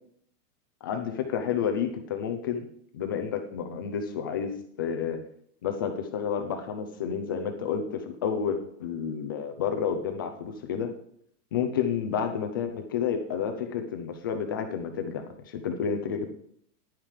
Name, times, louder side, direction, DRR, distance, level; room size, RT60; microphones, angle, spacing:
voice 1, 0.8-2.6 2.9-4.5 4.8-5.2 5.6-10.9 11.5-16.3, left 7 dB, 15° left, 5 dB, 0.3 m, -30 dB
10.5 x 9.0 x 4.8 m, 0.66 s
hypercardioid pair, 145°, 48 cm